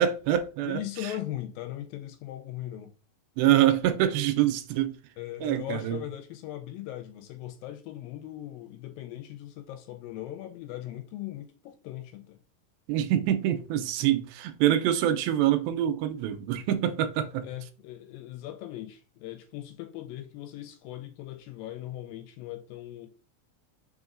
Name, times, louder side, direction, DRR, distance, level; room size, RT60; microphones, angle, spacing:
voice 1, 0.0-0.8 3.4-5.0 5.4-6.0 12.9-17.4, right 11 dB, 85° right, 2.4 m, -25 dB
voice 2, 0.7-2.9 5.2-12.4 17.4-23.1, left 13 dB, 80° left, 2.2 m, -39 dB
5.2 x 3.8 x 2.4 m
omnidirectional pair, 4.3 m